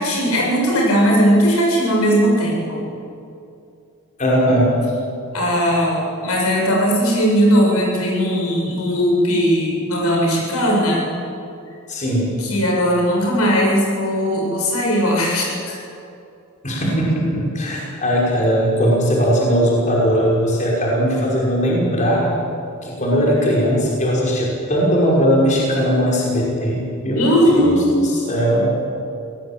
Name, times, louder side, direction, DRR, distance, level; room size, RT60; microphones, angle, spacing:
voice 1, 0.0-2.8 5.3-11.1 12.4-15.8 27.1-27.8, equal, 80° left, -1 dB, 7.6 m, -18 dB
voice 2, 4.2-4.8 11.9-12.3 16.6-22.3 22.8-28.7, equal, 35° left, -3 dB, 5.7 m, -19 dB
27.0 x 18.5 x 8.9 m, 2.6 s
head